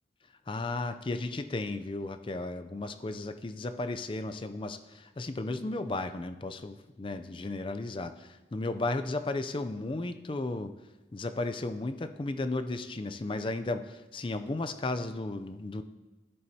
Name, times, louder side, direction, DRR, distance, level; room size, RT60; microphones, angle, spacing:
voice 1, 0.5-10.7 11.1-15.8, left 2 dB, 30° left, 10 dB, 0.4 m, -34 dB
11.0 x 11.0 x 2.8 m, 1.1 s
head